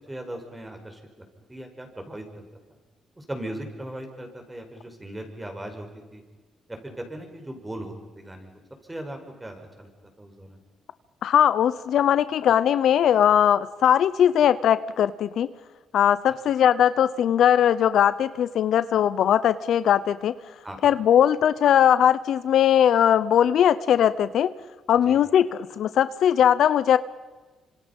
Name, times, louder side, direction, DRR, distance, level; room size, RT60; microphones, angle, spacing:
voice 1, 0.1-1.0 1.5-2.5 3.2-6.2 6.7-8.6 8.9-9.9 10.2-10.6 20.6-20.9 25.1-25.2, right 1 dB, 15° right, 4 dB, 5.2 m, -38 dB
voice 2, 11.2-15.5 15.9-20.3 20.8-24.5 24.9-27.0, left 9 dB, 70° left, 15 dB, 0.8 m, -20 dB
27.5 x 26.0 x 5.4 m, 1.2 s
cardioid pair, 90°, 0 cm